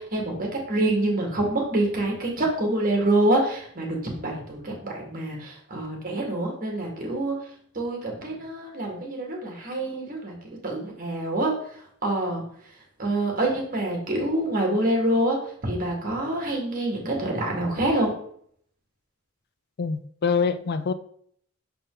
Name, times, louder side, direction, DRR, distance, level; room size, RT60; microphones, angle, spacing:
voice 1, 0.0-7.4 7.7-10.4 10.6-11.5 12.0-12.4 13.0-18.1, right 1 dB, 45° right, 1.9 m, -26 dB
voice 2, 19.8-20.9, left 5 dB, 50° left, 0.4 m, -25 dB
6.5 x 4.1 x 3.9 m
head